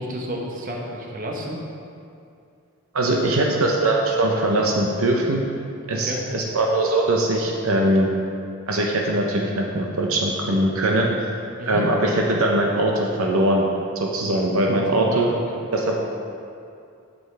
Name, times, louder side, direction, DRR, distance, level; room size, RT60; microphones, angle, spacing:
voice 1, 0.0-1.6 3.1-3.4 5.9-6.2 11.6-11.9 14.8-15.4, equal, 40° right, -1 dB, 1.0 m, -31 dB
voice 2, 2.9-5.4 5.9-8.1 8.7-11.3 11.7-13.7 14.0-15.3 15.7-16.0, right 1 dB, 70° right, 0 dB, 0.7 m, -21 dB
7.9 x 7.9 x 3.3 m, 2.5 s
head